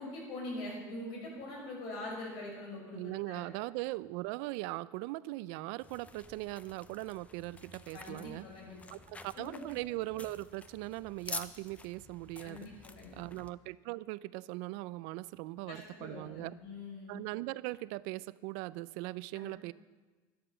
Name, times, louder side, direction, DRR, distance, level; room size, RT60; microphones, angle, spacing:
voice 1, 0.0-3.4 7.9-8.9 9.3-9.6 12.4-13.2 15.7-17.2 19.3-19.5, left 2 dB, 70° left, -2 dB, 5.8 m, -43 dB
voice 2, 3.0-8.4 8.9-12.7 13.1-16.5 17.1-19.7, right 19 dB, 80° right, 19 dB, 0.4 m, -40 dB
sound 1, 5.8-13.5, left 3 dB, 15° left, 0.6 m, -49 dB
12.5 x 11.5 x 6.9 m, 1.3 s
cardioid pair, 150°, 10 cm